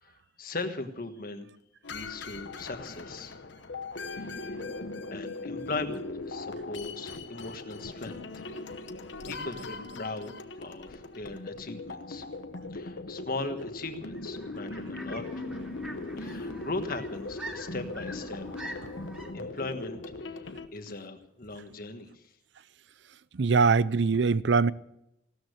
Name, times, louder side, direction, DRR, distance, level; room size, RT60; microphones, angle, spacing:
voice 1, 0.0-1.5 1.9-3.4 4.0-4.6 5.1-8.4 9.3-12.2 12.7-15.5 16.2-18.5 19.3-22.2, left 3 dB, 50° left, 1.5 m, -39 dB
sound 1, 1.8-20.7, left 2 dB, 85° left, 1.0 m, -39 dB
sound 2, 14.1-19.3, right 1 dB, 5° right, 2.8 m, -45 dB
voice 2, 23.3-24.7, right 4 dB, 75° right, 0.6 m, -22 dB
16.5 x 13.0 x 6.6 m
head